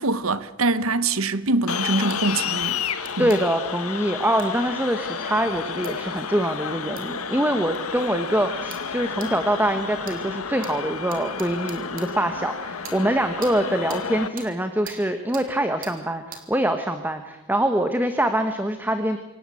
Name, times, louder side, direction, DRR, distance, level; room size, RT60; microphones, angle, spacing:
voice 1, 0.0-2.8 3.2-3.3, right 3 dB, 70° right, 1.2 m, -24 dB
sound 1, 1.7-14.3, left 6 dB, 80° left, 1.6 m, -31 dB
sound 2, 2.1-2.2 3.0-3.4 4.4-4.5 5.8-5.9 7.0-7.1 7.7-7.8 8.7-8.9 9.2-9.3 10.0-10.2 10.6-10.7 11.1-12.1 12.8-13.0 13.4-13.5 13.9-14.0 14.4-14.5 14.8-15.0 15.3-15.5 15.8-16.0 16.3-16.4, right 6 dB, 40° right, 3.4 m, -40 dB
voice 2, 3.2-19.2, right 1 dB, 10° right, 1.3 m, -24 dB
26.5 x 17.5 x 8.6 m
head